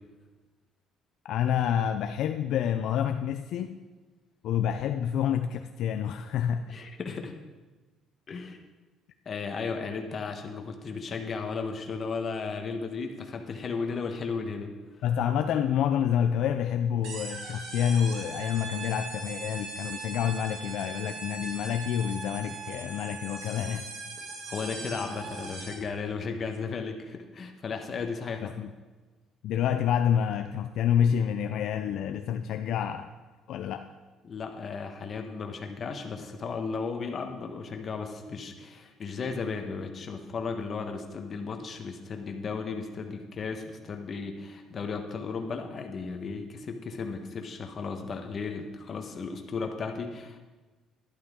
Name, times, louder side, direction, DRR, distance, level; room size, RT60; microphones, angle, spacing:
voice 1, 1.2-3.7 4.4-6.6 15.0-23.8 28.4-28.7 29.4-33.1 33.5-33.9, left 9 dB, 65° left, 7 dB, 0.5 m, -28 dB
voice 2, 6.7-7.3 8.3-8.6 9.2-14.7 24.5-28.5 34.2-50.4, left 5 dB, 35° left, 4 dB, 1.3 m, -35 dB
sound 1, 17.0-25.9, right 3 dB, 75° right, 2.5 m, -40 dB
11.5 x 11.5 x 3.7 m, 1.3 s
cardioid pair, 135°, 0 cm